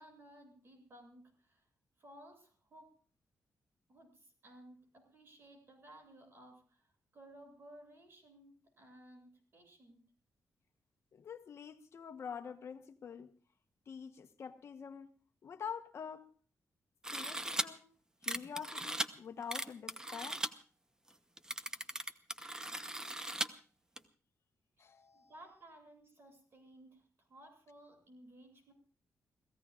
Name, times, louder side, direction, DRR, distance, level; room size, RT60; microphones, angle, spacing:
voice 1, 0.0-1.6 2.0-2.9 3.9-10.0 25.1-28.7, right 1 dB, 45° right, 7.9 m, -58 dB
voice 2, 11.1-13.3 13.9-15.1 15.4-16.2 17.1-17.8 18.2-20.4 24.8-25.3, left 7 dB, 55° left, 1.2 m, -46 dB
sound 1, 17.0-17.7 18.2-19.1 19.5-20.5 21.1-21.2 21.4-23.5 24.0-24.1, right 1 dB, 15° right, 0.9 m, -38 dB
29.0 x 17.0 x 2.5 m
wide cardioid pair, 130°, 5 cm